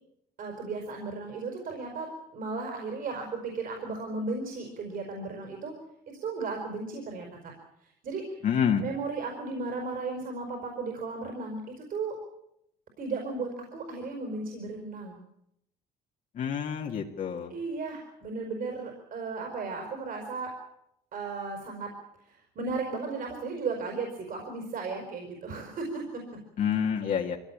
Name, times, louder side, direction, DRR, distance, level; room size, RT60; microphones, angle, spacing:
voice 1, 0.4-5.7 6.1-7.3 8.0-8.4 8.8-12.2 13.0-15.2 17.5-20.5 21.1-21.9 22.2-26.0, right 4 dB, 55° right, 2 dB, 5.2 m, -35 dB
voice 2, 8.4-8.8 16.4-17.5 26.6-27.4, left 7 dB, 50° left, 0 dB, 2.1 m, -27 dB
23.0 x 17.0 x 8.8 m, 0.78 s
cardioid pair, 110°, 17 cm